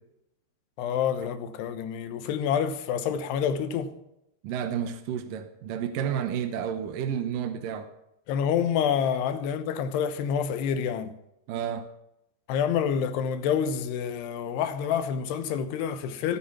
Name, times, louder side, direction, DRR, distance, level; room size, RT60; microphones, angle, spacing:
voice 1, 0.8-3.9 8.3-11.1 12.5-16.4, left 8 dB, 80° left, 3.1 m, -27 dB
voice 2, 4.4-7.9 11.5-11.8, right 8 dB, 70° right, 2.3 m, -31 dB
18.0 x 9.2 x 5.9 m
omnidirectional pair, 4.7 m